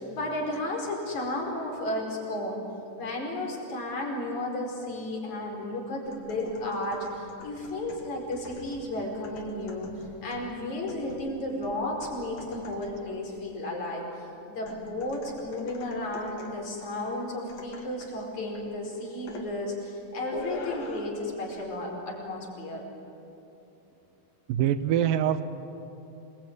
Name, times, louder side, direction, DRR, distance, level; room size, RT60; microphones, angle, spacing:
voice 1, 0.0-2.6 3.0-9.9 10.2-14.0 14.5-22.8, left 1 dB, 55° left, -1 dB, 6.3 m, -33 dB
sound 1, 6.1-13.1 14.7-16.7 17.5-18.2 18.6-18.8 19.3-19.5 20.3-21.2 21.5-21.7, left 3 dB, 85° left, 4.2 m, -44 dB
voice 2, 24.5-25.4, right 10 dB, 80° right, 11 dB, 2.6 m, -24 dB
27.5 x 21.0 x 9.5 m, 2.9 s
omnidirectional pair, 4.0 m